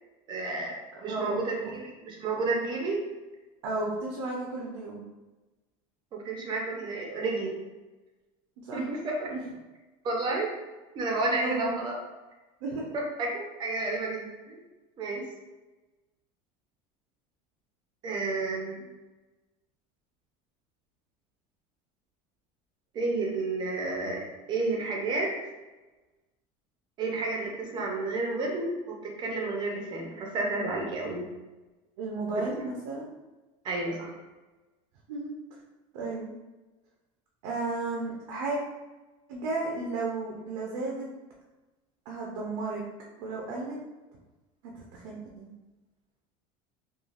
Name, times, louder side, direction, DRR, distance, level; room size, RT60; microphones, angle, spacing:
voice 1, 0.3-0.8 1.0-3.0 6.1-7.6 8.7-9.3 10.0-10.5 10.9-12.0 12.9-14.6 15.0-15.3 18.0-18.9 22.9-24.2 24.5-25.3 27.0-31.3 32.3-32.5 33.6-34.1, right 3 dB, 30° right, 0 dB, 0.5 m, -31 dB
voice 2, 0.9-1.4 3.6-5.0 8.6-8.9 9.3-9.4 11.4-11.7 12.6-12.9 32.0-33.0 35.1-35.3 35.9-36.3 37.4-38.6 39.3-41.1 42.1-42.8 43.2-43.8 44.6-45.5, right 3 dB, 85° right, -2 dB, 0.5 m, -33 dB
3.1 x 2.3 x 2.4 m, 1.2 s
cardioid pair, 165°, 16 cm